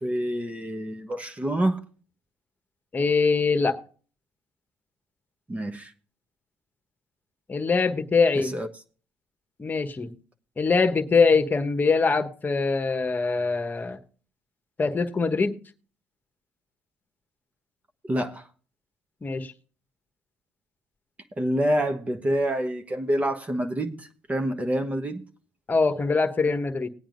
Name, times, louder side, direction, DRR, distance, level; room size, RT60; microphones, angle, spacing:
voice 1, 0.0-1.8 5.5-5.9 8.3-8.7 18.0-18.5 21.4-25.2, right 1 dB, 20° right, 1.1 m, -27 dB
voice 2, 2.9-3.8 7.5-8.5 9.6-10.1 10.6-14.0 14.8-15.5 19.2-19.5 25.7-26.9, left 4 dB, 25° left, 1.2 m, -23 dB
19.5 x 8.8 x 2.6 m
supercardioid pair, 75°, 6 cm